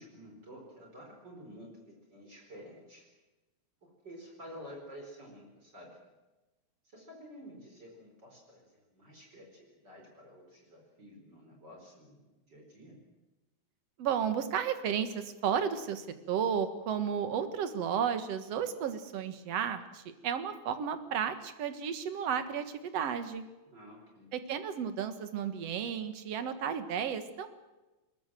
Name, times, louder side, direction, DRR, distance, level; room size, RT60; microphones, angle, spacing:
voice 1, 0.0-3.1 3.8-6.0 6.8-12.2 12.5-13.0 23.7-24.3, equal, 35° right, 1 dB, 5.0 m, -51 dB
voice 2, 14.0-23.4 24.3-27.5, right 8 dB, 60° right, 10 dB, 2.5 m, -33 dB
22.0 x 21.0 x 7.7 m, 1.1 s
omnidirectional pair, 3.3 m